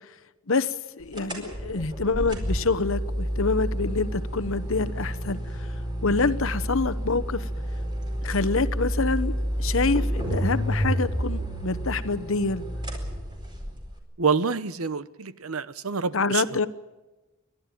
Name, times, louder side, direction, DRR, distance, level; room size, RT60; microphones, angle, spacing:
voice 1, 0.5-5.4 6.0-7.4 8.2-12.7 16.1-16.7, left 3 dB, 65° left, 14 dB, 1.0 m, -26 dB
sound 1, 1.1-14.0, equal, 20° right, 4.5 m, -30 dB
voice 2, 14.2-16.4, right 5 dB, 75° right, 15 dB, 0.9 m, -27 dB
29.5 x 12.0 x 9.2 m, 1.1 s
head